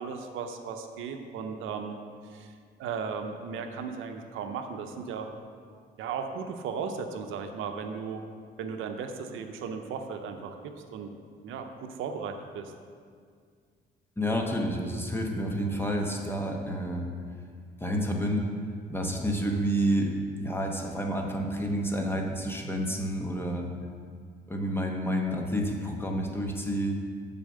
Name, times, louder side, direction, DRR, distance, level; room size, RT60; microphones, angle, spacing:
voice 1, 0.0-2.0 2.3-2.5 2.8-5.3 6.0-8.2 8.6-10.6 10.9-11.1 11.4-12.7, right 6 dB, 85° right, 5 dB, 0.6 m, -36 dB
voice 2, 14.2-17.1 17.8-18.5 18.9-20.1 20.4-23.6 24.5-27.0, equal, 10° left, 1 dB, 1.0 m, -29 dB
6.9 x 4.2 x 6.5 m, 2.1 s
cardioid pair, 90°, 20 cm